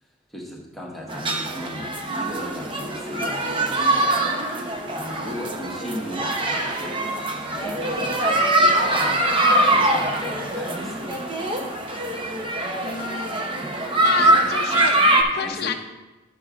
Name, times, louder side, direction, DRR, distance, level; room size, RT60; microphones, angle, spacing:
voice 1, 0.3-4.2 4.9-7.1 7.6-9.3 9.6-11.2 14.1-14.5 15.3-15.7, equal, ahead, -4 dB, 1.4 m, -36 dB
sound 1, 1.1-15.2, right 1 dB, 30° right, 0.8 m, -23 dB
voice 2, 12.8-13.5 14.0-15.0 15.3-15.7, left 6 dB, 60° left, 5 dB, 0.5 m, -29 dB
12.0 x 6.8 x 2.5 m, 1.1 s
head